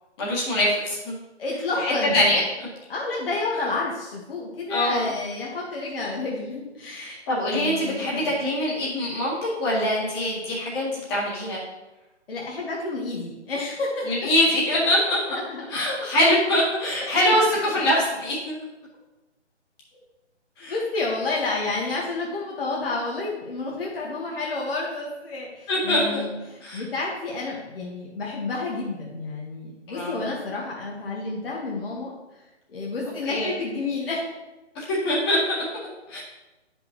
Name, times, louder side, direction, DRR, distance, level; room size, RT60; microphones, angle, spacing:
voice 1, 0.2-1.1 1.8-2.7 4.7-5.1 6.9-11.6 14.1-15.4 15.7-18.6 20.6-20.8 25.7-26.2 26.6-26.8 29.9-30.3 33.3-33.5 34.8-36.2, left 1 dB, 20° left, -5 dB, 1.9 m, -24 dB
voice 2, 1.4-2.2 2.9-7.2 7.5-8.4 12.3-14.3 15.3-15.6 20.6-32.1 32.7-34.2, left 3 dB, 55° left, -3 dB, 1.6 m, -30 dB
10.0 x 5.2 x 3.0 m, 1.1 s
figure-of-eight pair, 155°, 35 cm